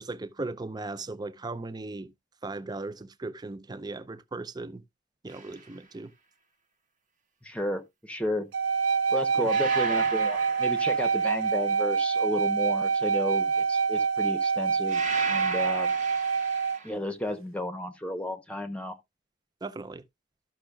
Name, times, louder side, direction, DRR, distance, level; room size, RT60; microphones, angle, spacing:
voice 1, 0.0-2.1 2.4-4.8 5.2-6.1 9.4-9.5 19.6-20.0, right 2 dB, 20° right, 0.5 m, -37 dB
sound 1, 5.3-5.6 9.5-11.6 14.9-16.9, right 4 dB, 40° right, 1.3 m, -36 dB
voice 2, 7.4-8.5 9.1-15.0 15.3-15.9 16.8-19.0, left 1 dB, 5° left, 0.9 m, -33 dB
sound 2, 8.5-16.8, right 5 dB, 90° right, 0.9 m, -26 dB
13.5 x 6.1 x 2.4 m
head